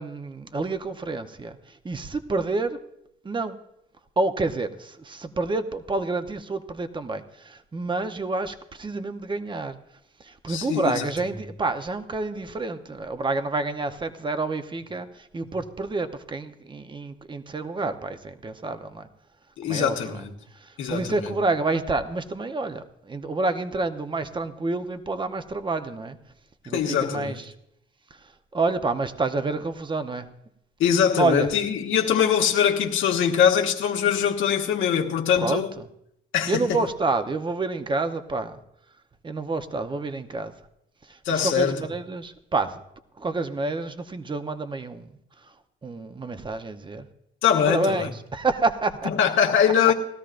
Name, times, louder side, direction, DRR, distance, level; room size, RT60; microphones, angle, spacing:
voice 1, 0.0-2.8 3.2-3.6 4.2-9.8 10.2-19.1 19.6-20.2 20.5-26.2 26.6-27.5 28.2-30.3 31.2-31.5 35.4-35.9 36.5-38.6 39.2-40.5 41.0-42.8 43.2-45.2 45.4-45.5 45.8-47.1 47.7-49.3, right 3 dB, 25° right, 0.9 m, -28 dB
voice 2, 10.5-11.0 19.6-20.3 20.8-21.3 26.7-27.4 30.8-35.7 36.3-36.8 41.2-41.9 47.4-48.1 49.0-49.9, left 8 dB, 80° left, 1.4 m, -22 dB
19.0 x 13.0 x 2.6 m
cardioid pair, 90°, 20 cm